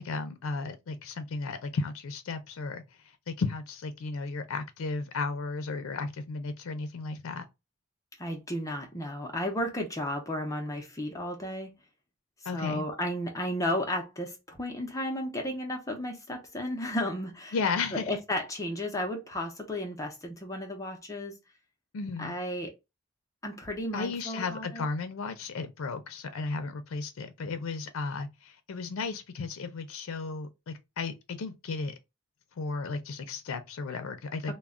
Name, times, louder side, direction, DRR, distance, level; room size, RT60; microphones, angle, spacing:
voice 1, 0.0-7.4 12.5-12.9 17.5-18.1 21.9-22.3 23.9-32.0 32.6-34.5, left 4 dB, 90° left, 0.4 m, -34 dB
voice 2, 8.2-11.7 12.5-17.6 17.9-21.3 22.2-22.7 23.4-24.9, left 1 dB, 15° left, 0.5 m, -33 dB
2.3 x 2.1 x 3.4 m
head